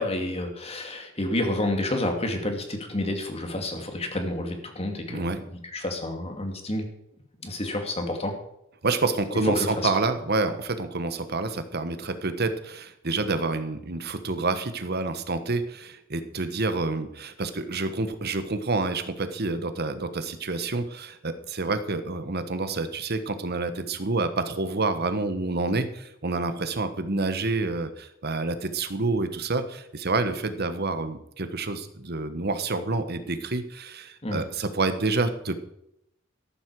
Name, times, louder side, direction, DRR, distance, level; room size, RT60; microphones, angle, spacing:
voice 1, 0.0-5.3 5.7-6.9 7.4-8.3 9.3-10.0 34.2-34.5, left 1 dB, 30° left, 4 dB, 2.4 m, -29 dB
voice 2, 5.1-5.4 8.8-35.6, right 3 dB, 50° right, 10 dB, 1.3 m, -28 dB
14.0 x 11.5 x 4.8 m, 0.78 s
head